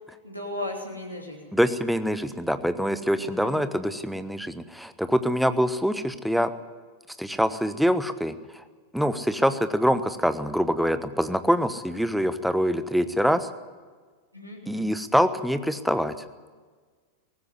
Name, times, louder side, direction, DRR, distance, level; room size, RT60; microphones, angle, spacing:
voice 1, 0.2-1.6 3.2-3.8 14.3-14.9, left 1 dB, 90° right, 0 dB, 3.7 m, -37 dB
voice 2, 1.5-6.5 7.2-8.3 8.9-13.5 14.7-16.1, equal, ahead, 11 dB, 1.1 m, -24 dB
18.5 x 16.0 x 9.6 m, 1.5 s
figure-of-eight pair, 90°, 0 cm